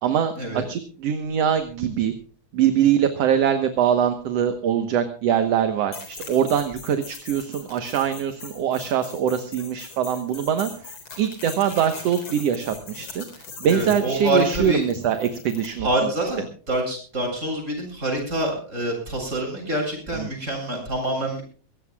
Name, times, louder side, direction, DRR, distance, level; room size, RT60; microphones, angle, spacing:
voice 1, 0.0-2.1 2.5-13.2 13.6-15.9 20.1-20.3, right 9 dB, 60° right, 8 dB, 2.1 m, -23 dB
sound 1, 5.9-15.7, left 4 dB, 45° left, 4.6 m, -41 dB
voice 2, 13.7-14.8 15.8-21.4, right 1 dB, 20° right, 1 dB, 8.1 m, -26 dB
22.5 x 17.5 x 2.3 m, 0.40 s
omnidirectional pair, 3.4 m